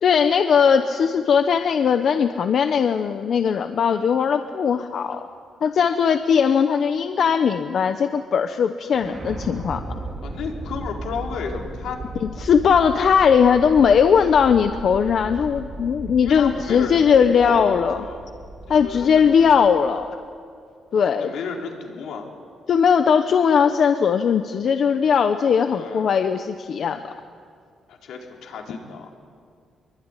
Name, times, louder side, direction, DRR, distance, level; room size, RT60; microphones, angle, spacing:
voice 1, 0.0-5.2 5.6-9.8 12.2-18.0 18.7-20.1 20.9-21.3 22.7-27.0, left 7 dB, 45° left, 8 dB, 0.9 m, -19 dB
sound 1, 8.9-20.0, right 2 dB, 20° right, 3.7 m, -36 dB
voice 2, 10.2-12.0 16.2-18.3 18.7-19.6 21.1-22.3 25.6-26.1 27.9-29.1, left 5 dB, 75° left, 1 dB, 4.3 m, -33 dB
24.5 x 23.0 x 10.0 m, 2.2 s
cardioid pair, 180°, 0 cm